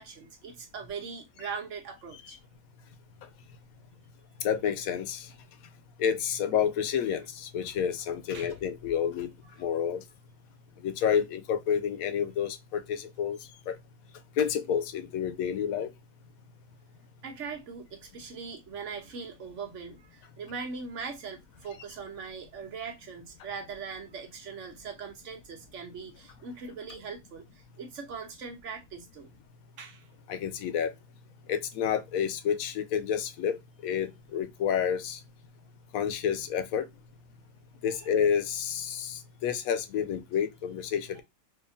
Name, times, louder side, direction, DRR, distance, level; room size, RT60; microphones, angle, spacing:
voice 1, 0.0-2.4 8.3-8.5 9.4-9.7 17.2-29.3 29.8-30.1 37.9-38.1 41.1-41.2, right 5 dB, 60° right, 1.2 m, -41 dB
voice 2, 4.4-5.3 6.0-9.3 9.6-10.0 10.8-13.4 13.7-13.8 14.4-15.9 30.3-30.9 31.5-35.2 35.9-36.9 37.8-41.2, left 8 dB, 75° left, 1.0 m, -29 dB
3.7 x 2.8 x 2.5 m
omnidirectional pair, 1.5 m